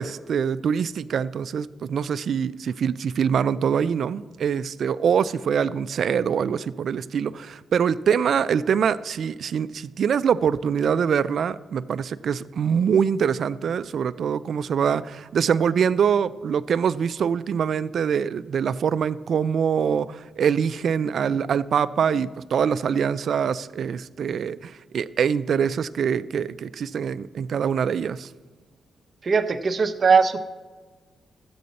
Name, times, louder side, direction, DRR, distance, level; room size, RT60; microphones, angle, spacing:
voice 1, 0.0-28.3, right 7 dB, 65° right, 16 dB, 0.3 m, -24 dB
voice 2, 29.2-30.4, right 5 dB, 45° right, 8 dB, 0.7 m, -20 dB
13.0 x 8.5 x 4.1 m, 1.4 s
cardioid pair, 95°, 0 cm